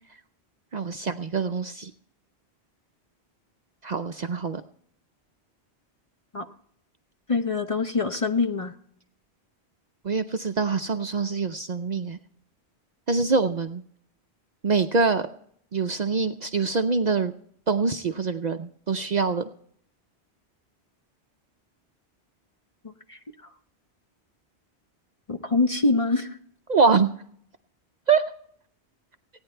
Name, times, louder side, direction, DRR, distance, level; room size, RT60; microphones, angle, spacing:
voice 1, 0.7-1.9 3.8-4.6 10.0-12.2 13.1-13.8 14.6-15.3 15.7-17.3 17.7-19.5 26.7-27.1 28.1-28.3, right 4 dB, 50° right, 9 dB, 0.6 m, -24 dB
voice 2, 7.3-8.7 23.1-23.2 25.3-26.3, left 3 dB, 35° left, 7 dB, 0.7 m, -24 dB
16.5 x 9.6 x 4.4 m, 0.65 s
omnidirectional pair, 1.1 m